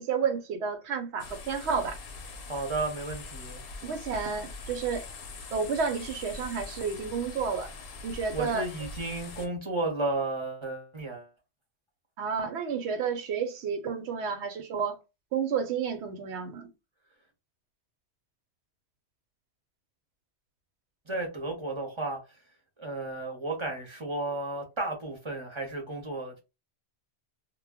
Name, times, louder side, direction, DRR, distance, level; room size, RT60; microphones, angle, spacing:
voice 1, 0.0-2.0 3.8-5.1 5.5-7.7 8.0-8.6 12.2-15.0 15.3-16.7, right 6 dB, 80° right, 0.9 m, -31 dB
sound 1, 1.2-9.5, left 3 dB, 65° left, 0.8 m, -43 dB
voice 2, 2.5-3.6 8.3-11.3 21.1-22.2 22.8-26.4, right 2 dB, 30° right, 0.7 m, -33 dB
2.2 x 2.1 x 3.4 m
omnidirectional pair, 1.1 m